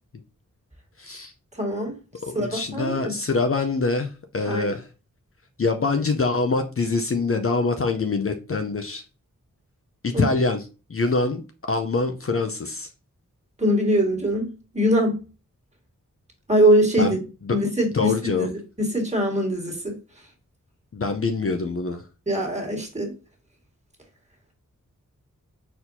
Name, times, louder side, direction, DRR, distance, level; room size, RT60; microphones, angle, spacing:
voice 1, 1.0-1.3 2.3-4.9 5.6-9.0 10.0-10.6 10.9-11.4 11.7-12.9 17.0-17.2 17.4-17.6 17.9-18.5 20.9-22.0, left 3 dB, 45° left, 0.6 m, -24 dB
voice 2, 1.6-2.0 2.3-3.1 4.5-4.7 10.1-10.2 13.6-15.2 16.5-17.2 17.5-18.5 18.8-20.0 22.3-23.1, equal, 20° right, 1.7 m, -22 dB
4.3 x 4.2 x 2.6 m
wide cardioid pair, 65°, 32 cm